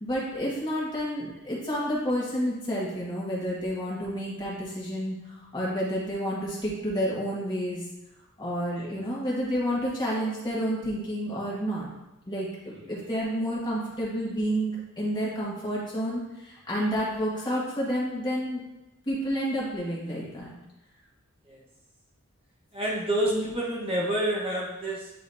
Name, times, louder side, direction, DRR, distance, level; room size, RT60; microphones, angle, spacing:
voice 1, 0.0-5.1 5.5-7.8 8.4-11.9 12.3-18.6 19.1-20.5 23.2-23.5, equal, 20° left, -7 dB, 1.7 m, -30 dB
voice 2, 22.7-25.1, right 1 dB, 25° right, -5 dB, 1.2 m, -29 dB
9.2 x 4.1 x 2.7 m, 0.96 s
head